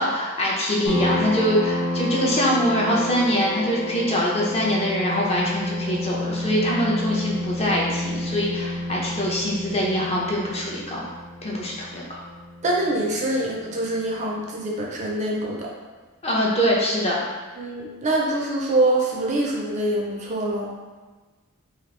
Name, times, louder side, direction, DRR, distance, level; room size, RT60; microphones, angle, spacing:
voice 1, 0.0-11.0 11.4-12.2 16.2-17.2, equal, 25° left, -4 dB, 0.5 m, -23 dB
sound 1, 0.9-14.1, left 1 dB, 70° left, 1.1 m, -30 dB
voice 2, 12.6-15.7 17.6-20.7, right 1 dB, 30° right, -2 dB, 0.4 m, -24 dB
2.9 x 2.4 x 3.2 m, 1.3 s
head